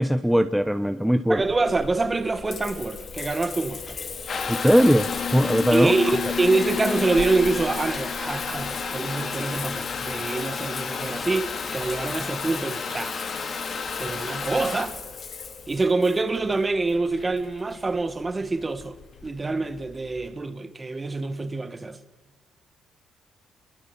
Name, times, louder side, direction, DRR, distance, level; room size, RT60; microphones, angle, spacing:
voice 1, 0.0-1.4 4.5-5.9, equal, ahead, 1.0 m, -20 dB
voice 2, 1.3-4.0 5.7-13.2 14.0-14.9 15.7-19.0 19.2-22.0, right 3 dB, 25° right, 2.0 m, -26 dB
Water tap faucet / Bathtub (filling or washing) / Trickle dribble, 1.4-20.3, left 5 dB, 50° left, 3.2 m, -32 dB
25.5 x 22.5 x 7.4 m
cardioid pair, 90°, 0 cm